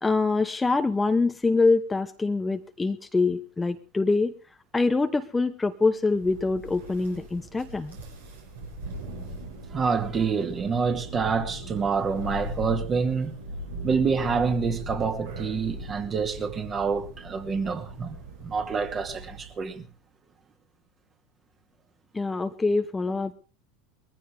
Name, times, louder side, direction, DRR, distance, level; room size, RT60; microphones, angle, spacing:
voice 1, 0.0-4.3 4.7-8.0 22.1-23.3, left 3 dB, 15° left, 0.9 m, -25 dB
Thunder, 6.0-19.7, equal, 75° right, 6.7 m, -39 dB
voice 2, 9.7-13.3 13.8-18.2 18.4-19.8, right 5 dB, 30° right, 2.5 m, -27 dB
21.5 x 15.0 x 3.4 m
figure-of-eight pair, 80°, 0 cm